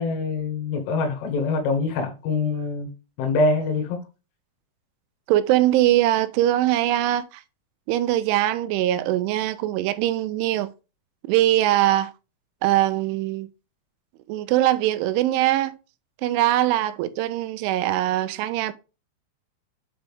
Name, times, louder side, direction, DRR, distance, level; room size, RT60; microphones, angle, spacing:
voice 1, 0.0-2.9 3.2-4.0, left 3 dB, 85° left, 4.2 m, -24 dB
voice 2, 5.3-7.4 7.9-10.7 11.2-12.1 12.6-13.5 14.3-15.8 16.2-18.7, right 14 dB, 85° right, 3.0 m, -22 dB
8.8 x 5.0 x 3.5 m
omnidirectional pair, 5.6 m